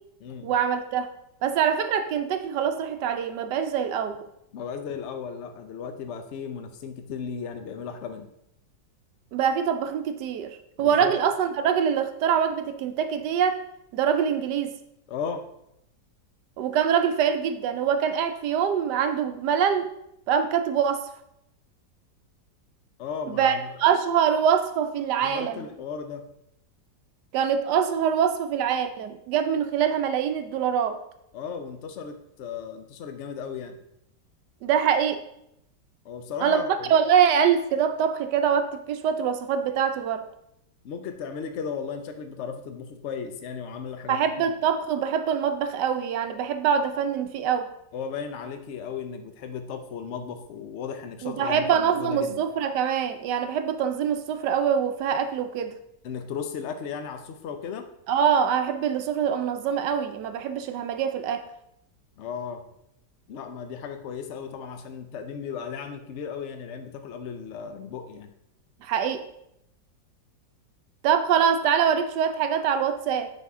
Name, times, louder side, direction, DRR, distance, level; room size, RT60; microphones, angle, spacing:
voice 1, 0.4-1.1 1.4-4.3 9.3-13.6 13.9-14.7 16.6-19.9 20.3-21.1 23.3-25.7 27.3-31.0 34.6-35.2 36.4-40.3 44.1-47.7 51.2-55.7 58.1-61.4 68.8-69.2 71.0-73.3, right 8 dB, 75° right, 9 dB, 1.2 m, -24 dB
voice 2, 4.5-8.3 10.8-11.1 15.1-15.5 23.0-23.8 25.2-26.3 31.3-33.8 36.0-37.0 40.8-44.5 47.9-52.4 56.0-57.9 62.2-62.6 63.3-68.3, left 6 dB, 55° left, 7 dB, 0.8 m, -35 dB
9.2 x 4.1 x 3.6 m, 0.79 s
omnidirectional pair, 1.9 m